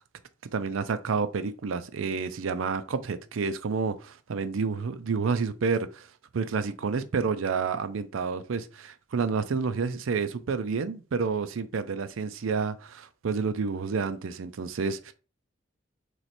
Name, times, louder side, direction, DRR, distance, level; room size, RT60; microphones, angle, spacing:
voice 1, 0.5-6.1 6.3-15.1, right 5 dB, 85° right, 0.5 m, -29 dB
3.1 x 3.1 x 4.1 m
head